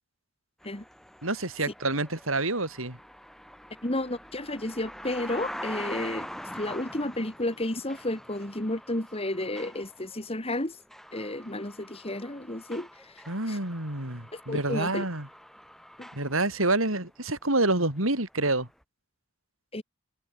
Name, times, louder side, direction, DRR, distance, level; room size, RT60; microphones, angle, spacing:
sound 1, 0.6-17.3 17.5-18.0 18.8-18.9, equal, ahead, 4.0 m, -44 dB
voice 1, 1.2-3.0 13.3-15.3 16.1-18.7, right 2 dB, 90° right, 6.9 m, -27 dB
voice 2, 3.8-6.3 6.5-10.8 11.1-13.6 14.3-15.0 16.0-16.1 19.7-19.8, left 1 dB, 30° left, 3.2 m, -32 dB
head